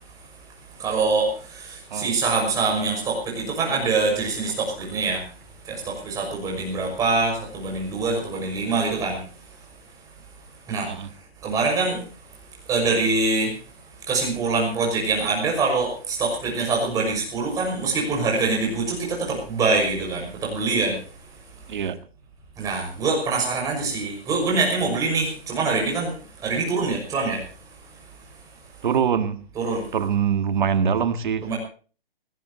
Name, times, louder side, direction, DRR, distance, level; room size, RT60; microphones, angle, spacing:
voice 1, 0.7-5.4 5.6-9.3 10.7-11.1 11.4-12.4 12.6-13.6 14.1-21.0 22.6-27.5 27.9-28.0 29.6-29.9 31.4-31.6, right 3 dB, 10° right, 6.0 m, -24 dB
voice 2, 28.8-29.4 29.9-31.5, right 7 dB, 50° right, 1.8 m, -23 dB
20.5 x 18.5 x 3.0 m
hypercardioid pair, 160°, 30 cm